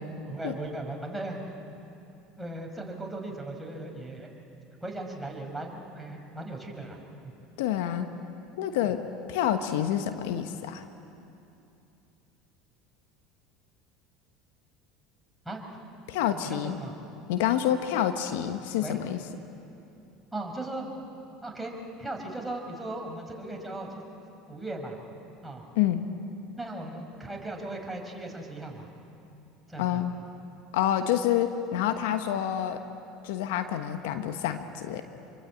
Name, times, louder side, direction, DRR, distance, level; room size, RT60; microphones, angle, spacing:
voice 1, 0.3-1.5 2.4-4.3 4.8-7.3 15.5-15.8 16.3-16.9 18.8-19.0 20.3-20.8 21.4-24.1 24.5-25.0 25.4-25.6 26.6-28.9 29.7-30.0, right 2 dB, 5° right, 1 dB, 5.3 m, -37 dB
voice 2, 7.6-8.1 8.6-9.0 9.3-10.8 16.1-16.8 17.3-19.2 25.8-26.0 29.8-30.1 30.7-32.8 33.2-35.0, left 11 dB, 75° left, 8 dB, 1.2 m, -27 dB
26.5 x 23.5 x 8.7 m, 2.7 s
hypercardioid pair, 80°, 0 cm